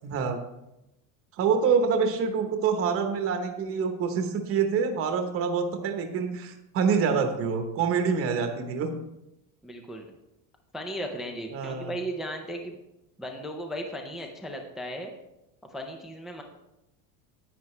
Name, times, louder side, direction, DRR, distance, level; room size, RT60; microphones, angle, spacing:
voice 1, 0.0-0.4 1.4-8.9 11.5-11.9, right 6 dB, 30° right, 5 dB, 1.0 m, -26 dB
voice 2, 9.6-10.1 10.7-12.8 13.2-15.1 15.7-16.4, equal, ahead, 3 dB, 0.4 m, -36 dB
10.5 x 9.1 x 3.2 m, 0.90 s
cardioid pair, 175°, 42 cm